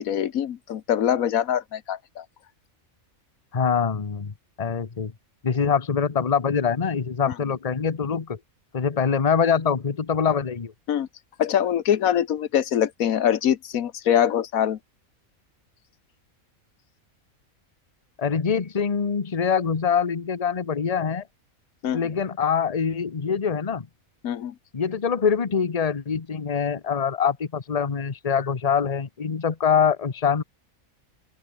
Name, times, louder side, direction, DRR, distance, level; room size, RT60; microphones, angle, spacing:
voice 1, 0.0-2.2 10.9-11.1 11.4-14.8 21.8-22.1 24.2-24.5, left 9 dB, 85° left, 1.4 m, -23 dB
voice 2, 3.5-5.1 5.4-8.4 8.7-10.7 18.2-21.2 21.9-23.9 24.7-30.4, left 6 dB, 30° left, 1.1 m, -24 dB
open air
omnidirectional pair, 1.4 m